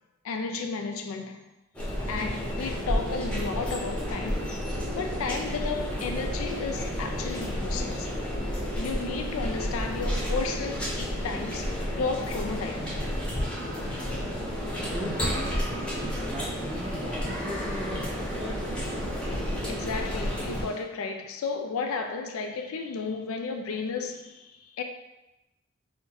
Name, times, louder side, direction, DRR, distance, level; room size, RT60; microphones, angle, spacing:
voice 1, 0.2-1.4 2.1-4.5 4.9-8.1 8.8-12.9 19.7-24.8, left 4 dB, 85° left, 0.4 m, -33 dB
sound 1, 1.7-20.6, equal, 5° left, 0.9 m, -31 dB
voice 2, 14.9-15.5 15.8-18.8 20.6-20.8, right 1 dB, 25° right, 0.4 m, -39 dB
3.8 x 2.1 x 4.2 m
head